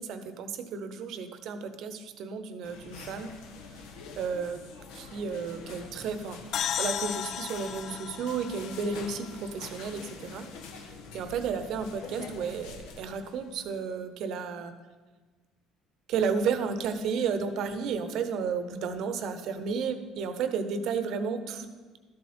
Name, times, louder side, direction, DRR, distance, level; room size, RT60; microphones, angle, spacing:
voice 1, 0.0-3.3 4.2-4.6 4.9-6.4 6.8-10.5 10.8-14.7 16.1-21.7, right 6 dB, 60° right, 10 dB, 0.9 m, -32 dB
sound 1, 2.6-13.8, left 4 dB, 85° left, 1.2 m, -46 dB
sound 2, 6.5-10.1, left 9 dB, 50° left, 0.3 m, -35 dB
12.5 x 7.6 x 4.4 m, 1.3 s
cardioid pair, 130°, 0 cm